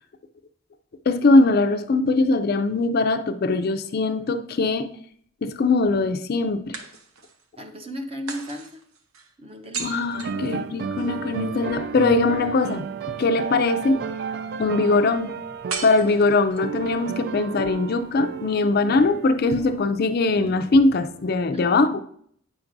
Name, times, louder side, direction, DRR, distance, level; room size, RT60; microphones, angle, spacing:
voice 1, 1.1-4.9 5.4-6.8 9.8-12.9 13.2-14.1 14.6-15.3 15.8-22.0, left 3 dB, 45° left, 9 dB, 0.4 m, -21 dB
sound 1, 3.6-4.7 6.7-7.5 8.3-11.1 15.7-16.8, right 5 dB, 85° right, 0.8 m, -37 dB
voice 2, 7.6-8.8 9.4-10.5 21.5-21.8, equal, 25° right, 5 dB, 0.7 m, -36 dB
sound 2, 10.1-21.4, right 6 dB, 50° right, 0.3 m, -33 dB
8.7 x 5.9 x 2.6 m, 0.64 s
head